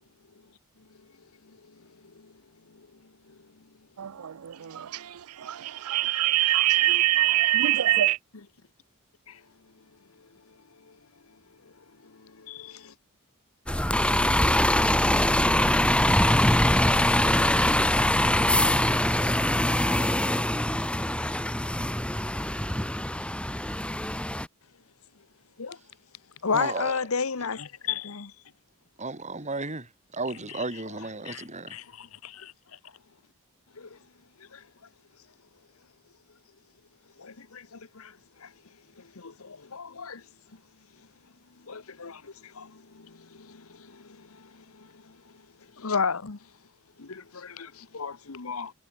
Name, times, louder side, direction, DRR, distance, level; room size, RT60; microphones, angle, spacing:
voice 1, 4.0-8.2, right 13 dB, 90° right, 0.5 m, -24 dB
voice 2, 12.0-12.9 25.6-25.8 26.4-28.3 30.5-30.6 31.2-32.5 33.8-34.0 34.4-34.6 37.2-38.5 39.0-40.2 41.7-45.2 45.8-46.4 47.0-48.7, left 5 dB, 70° left, 1.1 m, -34 dB
Bus, 13.7-24.5, left 1 dB, 5° left, 2.0 m, -23 dB
voice 3, 26.5-27.0 29.0-31.8, right 3 dB, 35° right, 4.2 m, -34 dB
head